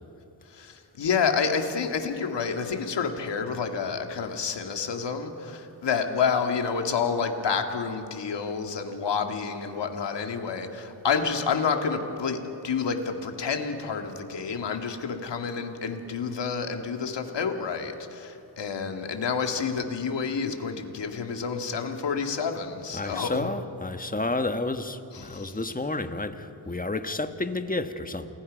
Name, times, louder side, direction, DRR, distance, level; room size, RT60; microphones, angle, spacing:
voice 1, 0.5-23.5 25.1-25.6, left 5 dB, 75° left, 4 dB, 2.1 m, -29 dB
voice 2, 22.9-28.3, left 2 dB, 20° left, 8 dB, 1.5 m, -30 dB
28.5 x 20.0 x 5.3 m, 2.8 s
cardioid pair, 55°, 43 cm